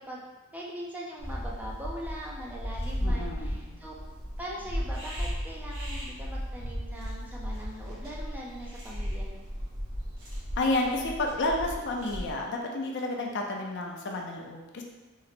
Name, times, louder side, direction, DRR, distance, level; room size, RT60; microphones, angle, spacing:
voice 1, 0.5-3.9 4.4-9.5, equal, 5° right, -4 dB, 0.4 m, -41 dB
sound 1, 1.2-12.3, equal, 60° right, 1.3 m, -35 dB
voice 2, 3.0-3.8 10.6-14.8, left 2 dB, 50° left, 1 dB, 0.5 m, -31 dB
3.9 x 2.0 x 4.2 m, 1.1 s
head